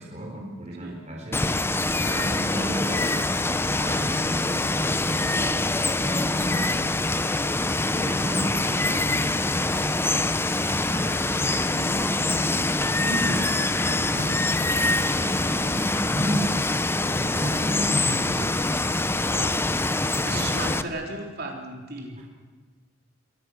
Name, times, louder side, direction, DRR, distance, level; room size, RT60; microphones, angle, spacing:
voice 1, 0.0-1.5 2.0-5.4 6.0-7.1 7.9-10.1 10.8-14.5 15.2-16.6 17.0-18.7 20.2-20.4 22.2-22.3, equal, 35° right, -1 dB, 3.9 m, -33 dB
Water, 1.3-20.8, left 2 dB, 10° left, 0.8 m, -25 dB
voice 2, 5.3-5.7 20.2-22.2, right 2 dB, 55° right, 1 dB, 3.6 m, -35 dB
29.5 x 23.0 x 6.4 m, 1.4 s
head